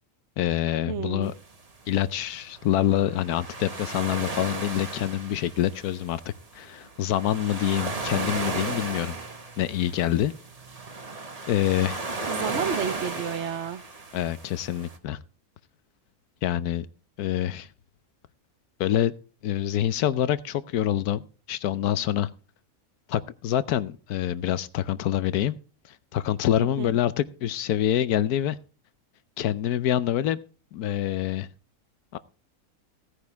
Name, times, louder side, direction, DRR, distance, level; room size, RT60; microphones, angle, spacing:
voice 1, 0.4-1.3 1.9-6.2 6.5-9.2 9.6-10.3 11.5-12.0 14.1-15.2 16.4-16.9 17.2-17.7 18.8-19.1 19.4-22.3 23.1-25.6 26.1-28.6 29.4-30.4 30.7-31.5 32.1-32.2, left 11 dB, 90° left, 1.2 m, -26 dB
voice 2, 0.9-1.3 12.3-13.8 26.6-26.9, right 8 dB, 60° right, 0.9 m, -31 dB
sound 1, 1.2-15.0, right 3 dB, 25° right, 1.2 m, -35 dB
16.0 x 9.6 x 3.5 m
omnidirectional pair, 1.6 m